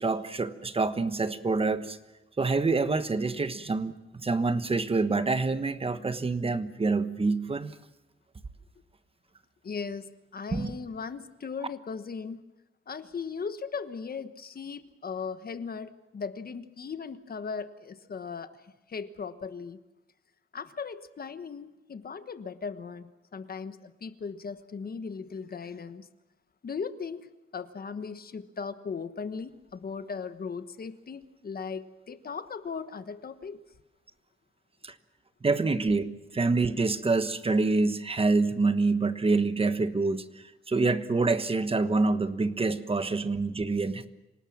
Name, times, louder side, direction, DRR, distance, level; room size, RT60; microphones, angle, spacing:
voice 1, 0.0-2.0 2.4-7.7 10.5-10.7 34.8-34.9 35.4-36.0 36.3-40.2 40.7-44.1, right 3 dB, 25° right, 11 dB, 1.2 m, -26 dB
voice 2, 9.6-12.4 12.9-18.5 18.9-19.8 20.5-26.1 26.6-27.3 27.5-33.6, left 5 dB, 45° left, 11 dB, 1.3 m, -38 dB
27.0 x 18.5 x 7.5 m, 1.0 s
wide cardioid pair, 145°, 21 cm